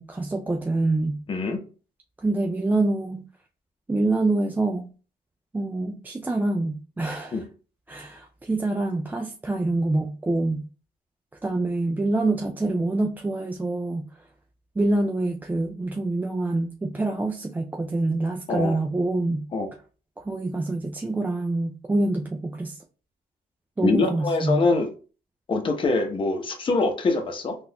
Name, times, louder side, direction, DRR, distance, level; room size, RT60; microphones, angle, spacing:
voice 1, 0.0-1.2 2.2-3.2 3.9-4.9 5.5-7.4 7.9-10.6 11.4-14.1 14.8-19.4 20.2-22.8 23.8-24.6, right 2 dB, 10° right, 0.3 m, -26 dB
voice 2, 1.3-1.6 7.3-7.4 18.5-18.7 19.5-19.7 23.8-24.9 25.5-27.6, left 3 dB, 30° left, 0.8 m, -24 dB
3.8 x 2.4 x 2.8 m
cardioid pair, 110°, 17 cm